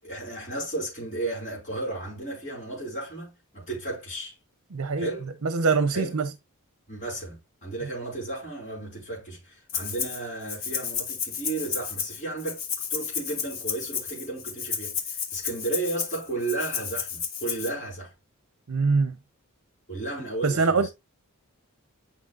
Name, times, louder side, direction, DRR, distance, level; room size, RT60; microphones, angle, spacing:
voice 1, 0.0-4.4 5.0-5.3 5.9-6.2 6.9-12.6 12.9-18.1 19.9-20.9, right 2 dB, 35° left, 4.8 m, -34 dB
voice 2, 4.7-5.1 5.4-6.3 18.7-19.2 20.4-20.9, right 4 dB, 65° right, 0.6 m, -23 dB
Rattle (instrument), 9.7-10.2 10.5-17.7, left 7 dB, 65° left, 1.5 m, -32 dB
8.9 x 5.6 x 2.4 m
head